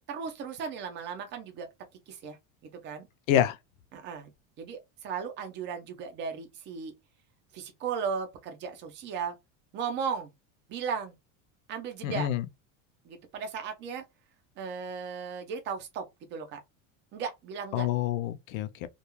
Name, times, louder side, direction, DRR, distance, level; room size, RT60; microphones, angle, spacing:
voice 1, 0.1-1.7 2.1-2.4 2.8-3.1 3.9-4.3 4.6-6.9 7.5-9.4 9.7-10.3 10.7-11.2 11.7-12.3 13.0-14.0 14.6-16.0 16.3-16.6 17.1-17.9, right 6 dB, 30° right, 0.5 m, -36 dB
voice 2, 12.0-12.5 17.7-18.9, left 11 dB, 85° left, 0.6 m, -27 dB
2.3 x 2.3 x 2.9 m
cardioid pair, 170°, 40 cm